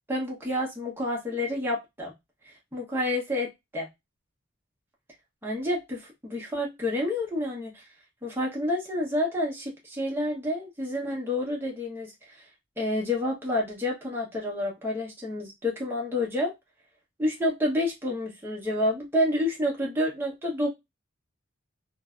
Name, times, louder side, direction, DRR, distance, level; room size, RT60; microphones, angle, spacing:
voice 1, 0.1-2.1 2.7-3.9 5.4-7.8 8.2-12.4 12.8-16.5 17.2-20.7, left 1 dB, 10° right, -2 dB, 0.8 m, -29 dB
2.6 x 2.1 x 2.3 m, 0.19 s
head